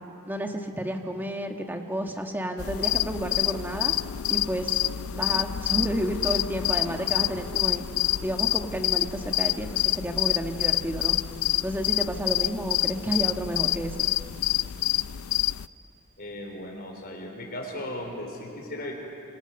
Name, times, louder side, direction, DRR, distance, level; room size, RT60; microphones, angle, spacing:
voice 1, 0.3-3.9 4.3-4.8 5.1-7.8 8.2-11.2 11.6-14.1, right 1 dB, 10° right, 3 dB, 1.7 m, -31 dB
sound 1, 2.6-15.7, left 14 dB, 85° left, 0.5 m, -27 dB
voice 2, 16.2-18.9, left 1 dB, 45° left, 1 dB, 4.6 m, -36 dB
27.0 x 26.0 x 7.0 m, 2.9 s
head